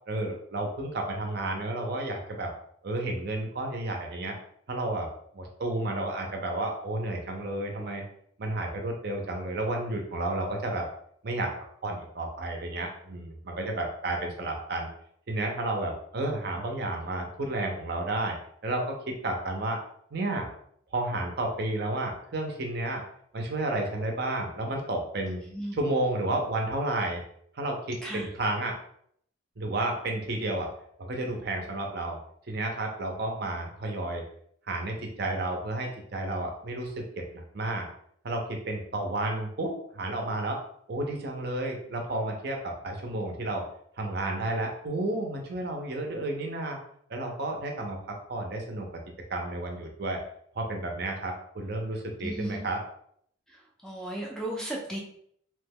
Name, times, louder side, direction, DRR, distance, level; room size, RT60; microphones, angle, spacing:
voice 1, 0.1-2.5 2.8-4.4 4.7-8.0 8.4-10.9 11.2-11.5 11.8-14.9 15.3-18.4 18.6-19.8 20.1-20.5 20.9-23.0 23.3-25.4 25.7-27.2 27.5-28.8 29.6-30.7 31.0-32.2 32.5-34.2 34.7-37.9 38.2-40.6 40.9-43.7 44.0-46.8 47.1-48.9 49.3-50.2 50.5-52.8, right 2 dB, 55° right, 2 dB, 0.6 m, -31 dB
voice 2, 25.4-25.8 28.0-28.3 52.2-52.6 53.5-55.0, right 1 dB, 5° left, -2 dB, 0.4 m, -36 dB
2.9 x 2.2 x 3.4 m, 0.67 s
head